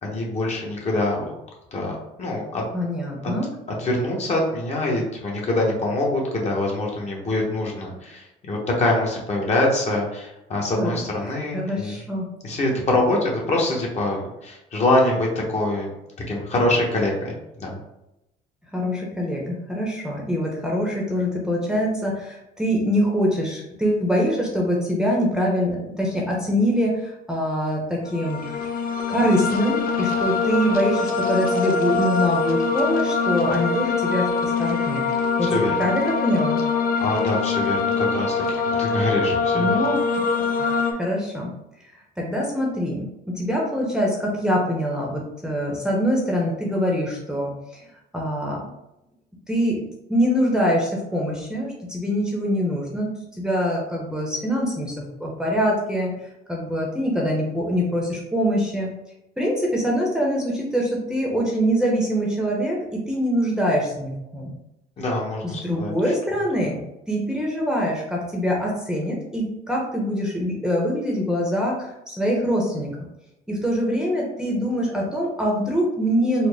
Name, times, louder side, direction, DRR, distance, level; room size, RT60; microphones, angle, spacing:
voice 1, 0.0-1.2 1.7-2.6 3.8-12.0 12.4-15.9 16.3-17.8 35.4-35.7 37.0-39.7 65.0-65.9, left 2 dB, 40° left, -2 dB, 1.1 m, -24 dB
voice 2, 2.7-3.5 10.8-10.9 11.3-12.3 18.7-28.4 29.1-35.0 35.4-36.6 39.5-40.0 40.6-41.5 42.2-47.9 48.1-48.7 49.5-49.8 50.1-54.9 55.2-56.1 56.5-58.9 59.4-64.5 65.4-66.8 67.1-72.9 73.5-76.5, equal, 5° right, -2 dB, 0.7 m, -24 dB
sound 1, 28.0-40.9, left 4 dB, 60° left, 0.6 m, -23 dB
4.2 x 2.1 x 3.4 m, 0.87 s
cardioid pair, 110°, 17 cm